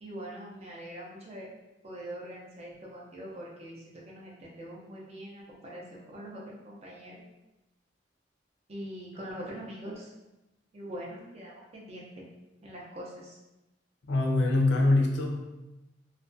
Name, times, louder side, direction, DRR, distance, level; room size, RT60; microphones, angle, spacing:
voice 1, 0.0-1.5 1.8-7.2 8.7-10.1 10.7-12.3 12.6-13.4, right 1 dB, 35° right, -3 dB, 0.5 m, -43 dB
voice 2, 14.1-15.4, left 2 dB, 65° left, 1 dB, 0.4 m, -24 dB
2.3 x 2.2 x 2.5 m, 0.98 s
head